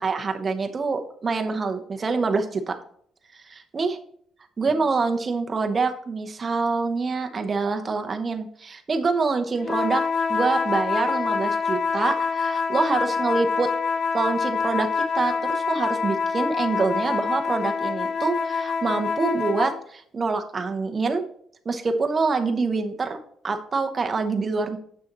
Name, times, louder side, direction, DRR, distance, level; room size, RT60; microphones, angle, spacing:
voice 1, 0.0-2.8 3.3-4.0 4.6-10.0 10.3-13.7 14.1-21.2 21.6-23.2 23.4-24.8, right 4 dB, 25° right, 6 dB, 0.7 m, -26 dB
sound 1, 9.6-19.8, left 5 dB, 40° left, 0.4 m, -26 dB
7.2 x 6.2 x 3.0 m, 0.63 s
cardioid pair, 145°, 0 cm